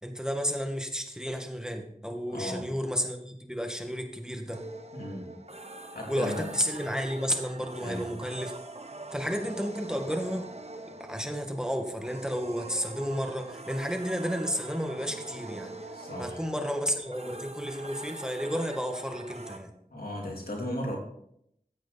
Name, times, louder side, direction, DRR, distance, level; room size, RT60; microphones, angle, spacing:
voice 1, 0.0-4.6 6.1-8.5 9.1-10.5 11.0-15.8 16.2-19.7, equal, 5° right, 3 dB, 1.8 m, -32 dB
voice 2, 2.3-2.7 4.9-5.4 5.9-6.5 7.8-8.1 15.9-16.4 19.9-21.0, left 1 dB, 85° left, -1 dB, 3.0 m, -36 dB
sound 1, 4.5-19.6, right 2 dB, 45° right, 1.1 m, -44 dB
15.0 x 8.3 x 4.2 m, 0.73 s
wide cardioid pair, 45°, 15 cm